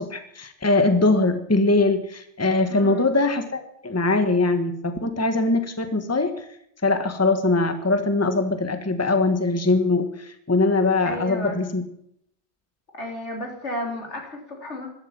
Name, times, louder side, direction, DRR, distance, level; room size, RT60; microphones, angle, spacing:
voice 1, 0.0-6.4 6.8-11.8, left 2 dB, 15° left, 8 dB, 1.3 m, -22 dB
voice 2, 2.7-3.1 11.1-11.6 13.0-14.9, left 1 dB, 90° left, 1 dB, 4.0 m, -32 dB
13.5 x 12.0 x 7.4 m, 0.71 s
omnidirectional pair, 1.1 m